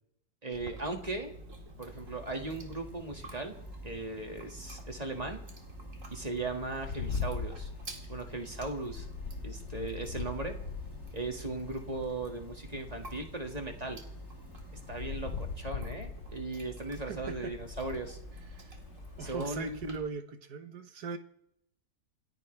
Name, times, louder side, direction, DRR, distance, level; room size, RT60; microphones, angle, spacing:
voice 1, 0.4-1.3 1.8-3.5 3.8-5.4 6.1-7.7 8.1-9.1 9.4-10.5 11.1-14.0 14.9-18.2 19.2-20.0, right 2 dB, 25° right, 3 dB, 2.1 m, -38 dB
Chewing mastication, 0.5-20.0, right 1 dB, 50° right, 2.5 m, -48 dB
sound 1, 1.9-15.6, equal, 15° left, 1.9 m, -52 dB
sound 2, 6.8-12.3 12.8-19.3, left 5 dB, 50° left, 1.2 m, -41 dB
voice 2, 17.0-17.5 18.5-18.8 19.2-21.2, right 5 dB, 75° right, 8 dB, 1.7 m, -40 dB
28.0 x 14.5 x 3.4 m, 0.71 s
omnidirectional pair, 1.7 m